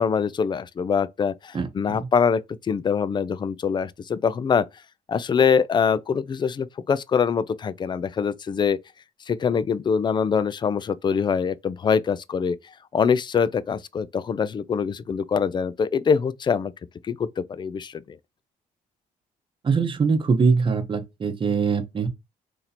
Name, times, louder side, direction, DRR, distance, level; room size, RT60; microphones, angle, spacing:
voice 1, 0.0-4.7 5.1-8.8 9.3-12.6 12.9-16.7 17.0-18.2, left 6 dB, 30° left, 0.4 m, -24 dB
voice 2, 1.5-2.0 19.6-22.1, right 5 dB, 35° right, 0.8 m, -22 dB
3.0 x 2.7 x 4.0 m
cardioid pair, 95°, 15 cm